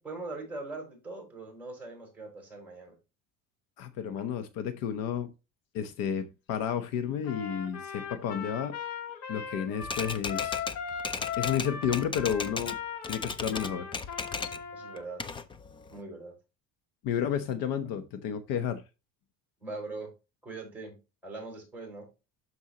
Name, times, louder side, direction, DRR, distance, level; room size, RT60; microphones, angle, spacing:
voice 1, 0.0-2.9 14.7-15.2 15.9-16.3 19.6-20.1 20.4-22.1, right 3 dB, 5° right, 4.9 m, -41 dB
voice 2, 3.8-5.3 5.7-8.8 9.3-10.6 11.4-12.8 13.1-13.9 17.0-18.8, left 8 dB, 70° left, 1.0 m, -31 dB
Trumpet, 7.2-15.0, left 7 dB, 85° left, 1.8 m, -38 dB
Typewriter, 9.8-12.8 13.0-14.6 15.0-16.0, left 4 dB, 15° left, 0.4 m, -36 dB
12.5 x 4.6 x 2.9 m
cardioid pair, 155°, 36 cm